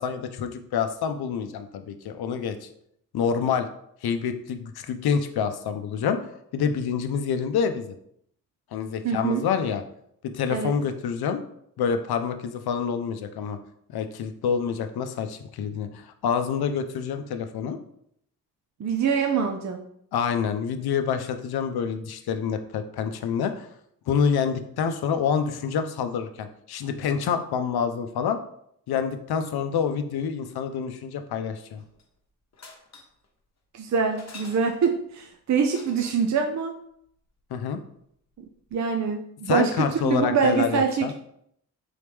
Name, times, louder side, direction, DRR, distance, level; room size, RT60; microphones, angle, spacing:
voice 1, 0.0-2.7 3.1-3.7 4.0-6.2 6.5-7.9 8.7-9.8 10.3-11.4 11.8-13.6 13.9-17.8 20.1-23.7 24.1-28.4 28.9-31.8 37.5-37.8 39.5-41.1, left 7 dB, 75° left, 8 dB, 0.6 m, -27 dB
voice 2, 9.0-9.4 10.5-10.7 18.8-19.8 33.7-36.7 38.7-41.1, right 6 dB, 45° right, 4 dB, 0.6 m, -24 dB
sound 1, 31.8-32.2 32.5-33.3 34.1-35.0 35.6-36.3 38.4-38.5 38.7-38.8, left 3 dB, 45° left, 1.0 m, -47 dB
3.9 x 3.1 x 3.5 m, 0.70 s
supercardioid pair, 40°, 38 cm